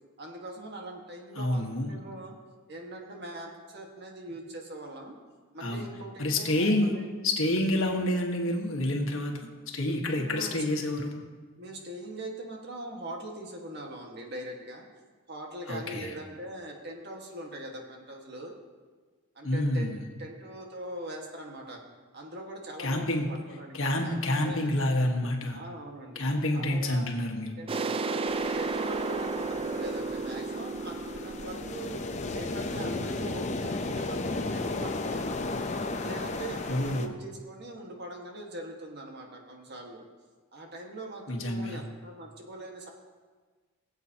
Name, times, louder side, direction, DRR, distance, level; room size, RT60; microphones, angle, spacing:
voice 1, 0.2-2.3 2.7-5.1 5.5-7.1 10.0-10.6 11.6-14.8 15.3-18.5 19.3-19.9 20.2-21.8 22.1-24.8 25.5-26.2 26.5-27.1 27.6-28.2 28.5-32.0 32.3-35.6 36.0-40.0 40.5-42.9, right 1 dB, 50° right, 1 dB, 1.6 m, -42 dB
voice 2, 1.4-1.9 5.6-5.9 6.2-6.9 7.2-9.4 9.7-11.2 15.7-16.1 19.4-20.0 22.8-23.3 23.7-25.6 26.1-27.5 36.7-37.1 41.3-41.8, left 1 dB, 70° left, 1 dB, 1.5 m, -28 dB
sound 1, 27.7-33.2, right 3 dB, 25° right, 0.4 m, -33 dB
sound 2, 28.3-37.1, left 2 dB, 35° left, 0.6 m, -35 dB
21.0 x 8.1 x 2.9 m, 1.4 s
head